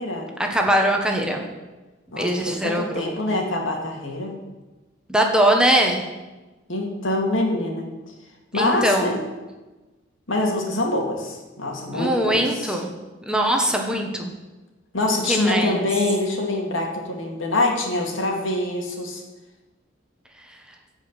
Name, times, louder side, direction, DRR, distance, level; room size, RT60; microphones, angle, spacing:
voice 1, 0.4-1.4 2.2-3.4 5.1-6.0 8.5-9.2 11.9-12.9 13.3-14.3 15.2-15.9, right 1 dB, 5° right, 1 dB, 1.3 m, -21 dB
voice 2, 2.1-4.4 6.7-7.9 8.5-9.2 10.3-12.8 14.9-19.2, left 2 dB, 75° left, 1 dB, 2.4 m, -25 dB
15.0 x 5.3 x 8.2 m, 1.2 s
head